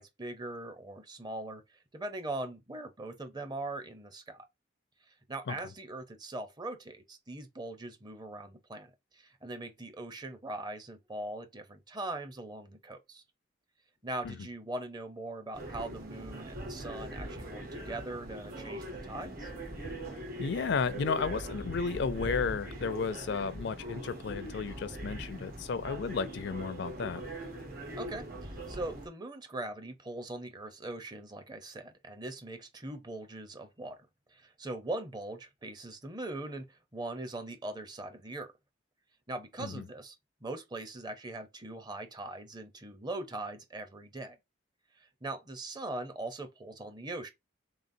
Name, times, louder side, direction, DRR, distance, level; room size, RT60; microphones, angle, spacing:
voice 1, 0.0-4.5 5.1-13.2 14.0-19.5 28.0-34.0 34.3-38.5 39.3-40.2 40.4-44.4 45.0-47.3, right 2 dB, 20° right, 0.6 m, -41 dB
sound 1, 15.5-29.1, right 1 dB, 50° right, 1.4 m, -41 dB
voice 2, 20.4-27.2 39.6-39.8, left 5 dB, 60° left, 0.4 m, -33 dB
3.9 x 3.6 x 2.6 m
head